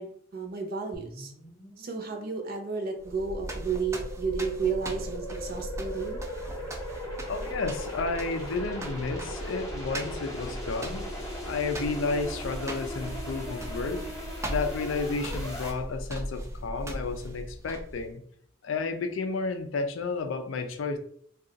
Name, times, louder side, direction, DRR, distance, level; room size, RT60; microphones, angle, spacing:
voice 1, 0.0-1.3 1.8-6.2, right 5 dB, 50° right, 3 dB, 0.6 m, -32 dB
sound 1, 0.9-15.7, equal, 20° left, 0.8 m, -40 dB
sound 2, 3.0-18.1, equal, 15° right, 0.4 m, -38 dB
voice 2, 7.3-11.1 11.4-14.1 14.5-18.2 18.6-21.0, left 4 dB, 80° left, 7 dB, 0.4 m, -32 dB
2.4 x 2.3 x 3.8 m, 0.64 s
head